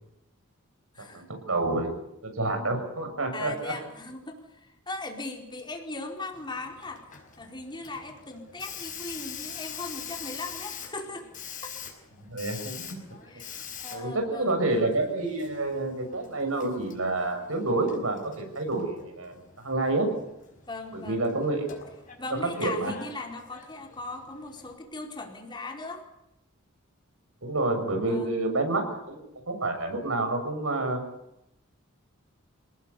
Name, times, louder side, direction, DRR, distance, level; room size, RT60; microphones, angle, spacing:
voice 1, 1.1-2.0 2.2-3.7 12.3-13.0 13.9-19.4 19.6-20.1 20.9-21.7 22.4-22.9 27.4-31.0, right 2 dB, 80° right, 5 dB, 6.7 m, -28 dB
voice 2, 3.3-7.0 7.4-11.3 13.3-13.5 13.8-14.5 20.7-21.2 22.2-26.0 28.0-28.3, left 2 dB, 20° left, 2 dB, 4.6 m, -38 dB
Hiss, 6.3-24.7, left 7 dB, 40° left, 5.7 m, -45 dB
27.5 x 19.0 x 8.5 m, 0.85 s
head